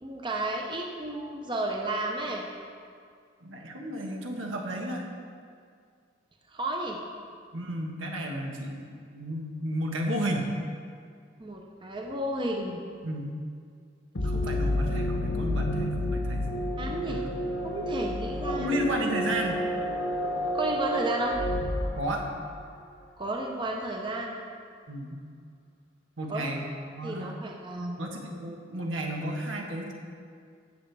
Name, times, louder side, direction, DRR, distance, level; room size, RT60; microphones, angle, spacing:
voice 1, 0.0-2.4 6.5-7.0 11.4-12.8 16.8-17.2 17.6-18.9 20.5-21.3 23.2-24.3 26.3-26.5 27.0-28.0, right 1 dB, 25° right, 0 dB, 0.7 m, -32 dB
voice 2, 3.4-5.1 7.5-10.5 13.0-13.3 14.2-16.7 17.0-17.4 18.5-19.6 22.0-22.2 24.9-25.2 26.2-27.4 28.0-29.9, right 1 dB, 90° right, 1 dB, 1.4 m, -33 dB
sound 1, 14.1-22.8, left 1 dB, 65° left, 1.0 m, -30 dB
16.5 x 6.4 x 3.4 m, 2.2 s
head